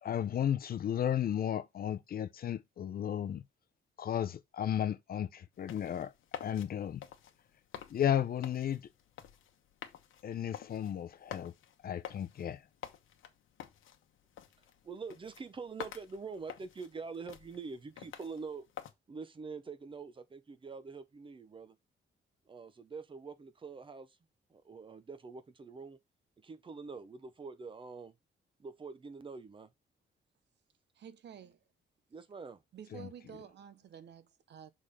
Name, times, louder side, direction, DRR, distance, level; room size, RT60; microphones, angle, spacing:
voice 1, 0.0-3.4 4.0-6.1 6.4-7.0 7.9-8.8 10.2-11.5 11.8-12.6 32.9-33.1, left 10 dB, 50° left, 0.6 m, -34 dB
sound 1, 5.5-18.9, left 10 dB, 85° left, 1.1 m, -50 dB
voice 2, 14.8-18.7 19.1-21.8 22.5-24.2 24.5-26.0 26.4-28.1 28.6-29.7 32.1-32.6, right 4 dB, 25° right, 0.7 m, -45 dB
voice 3, 31.0-31.6 32.7-34.7, right 8 dB, 60° right, 0.8 m, -50 dB
6.4 x 3.7 x 5.0 m
wide cardioid pair, 165°, 20 cm